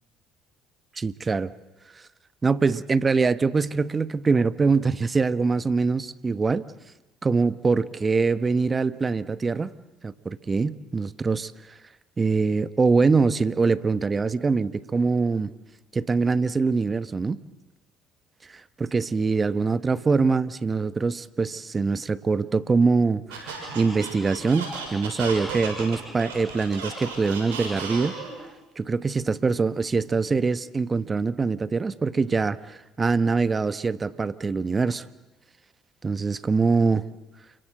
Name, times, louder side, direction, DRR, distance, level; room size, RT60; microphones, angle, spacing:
voice 1, 1.0-1.5 2.4-6.6 7.2-9.7 10.0-11.5 12.2-15.5 15.9-17.4 18.5-28.1 28.8-35.0 36.0-37.0, right 4 dB, 30° right, 16 dB, 1.1 m, -23 dB
Squeak, 23.3-28.4, right 4 dB, 90° right, 6.8 m, -34 dB
28.5 x 23.5 x 7.8 m, 1.0 s
hypercardioid pair, 65°, 0 cm